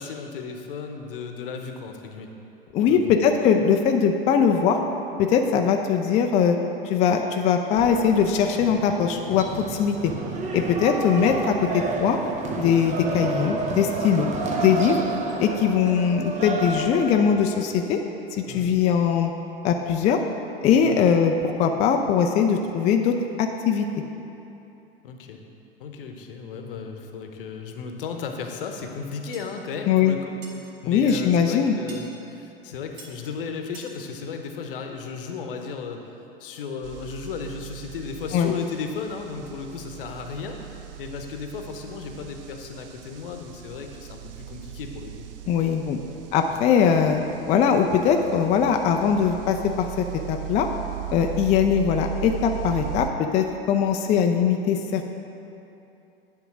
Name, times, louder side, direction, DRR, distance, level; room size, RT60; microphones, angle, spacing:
voice 1, 0.0-2.3 2.8-3.0 18.5-18.7 20.8-21.0 25.0-25.4 25.8-36.1 36.4-45.3, left 5 dB, 60° left, 4 dB, 0.9 m, -35 dB
voice 2, 2.7-4.8 5.2-6.6 6.8-10.1 10.5-12.2 12.6-15.0 15.4-18.0 18.3-19.3 19.6-20.2 20.6-23.9 29.9-30.2 30.9-31.8 38.3-38.5 45.5-46.0 46.3-47.2 47.5-50.7 51.1-55.0, left 7 dB, 25° left, 4 dB, 0.4 m, -21 dB
sound 1, 7.8-17.3, right 3 dB, 25° right, 0.7 m, -30 dB
sound 2, 29.3-29.5 30.4-30.5 31.1-31.2 31.9-32.0 33.0-33.1 33.7-33.9, right 3 dB, 45° right, 1.5 m, -43 dB
sound 3, 36.8-53.1, right 15 dB, 65° right, 0.5 m, -38 dB
9.7 x 3.7 x 6.0 m, 2.9 s
figure-of-eight pair, 85°, 30 cm